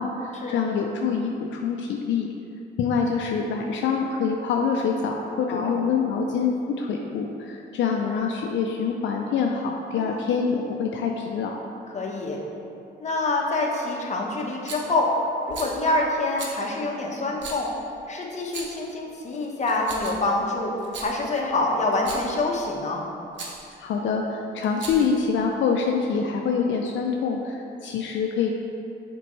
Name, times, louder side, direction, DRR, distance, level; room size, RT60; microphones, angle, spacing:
voice 1, 0.0-2.3 2.8-11.6 23.8-28.5, left 5 dB, 70° left, 1 dB, 0.5 m, -25 dB
voice 2, 11.9-12.4 13.0-15.1 15.5-17.7 18.1-23.0, left 2 dB, 35° left, -1 dB, 1.0 m, -26 dB
Rattle, 14.7-14.9 15.5-15.8 16.4-16.6 17.4-17.6 18.4-18.9 19.6-20.3 20.8-21.1 21.9-22.3 23.3-23.6 24.6-25.2, right 4 dB, 65° right, 1.0 m, -37 dB
6.8 x 4.4 x 3.1 m, 2.7 s
cardioid pair, 90°, 20 cm